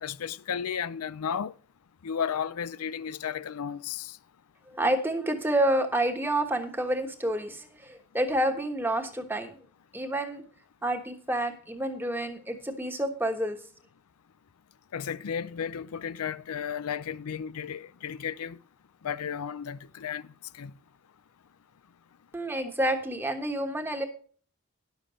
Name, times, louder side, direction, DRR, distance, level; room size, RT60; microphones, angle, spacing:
voice 1, 0.0-1.5 2.0-4.2 14.9-18.6 19.0-20.3 20.5-20.7, left 7 dB, 90° left, 0.5 m, -33 dB
voice 2, 4.7-9.5 9.9-10.4 10.8-13.6 22.3-24.0, right 1 dB, 10° right, 1.2 m, -29 dB
11.0 x 7.1 x 5.0 m
head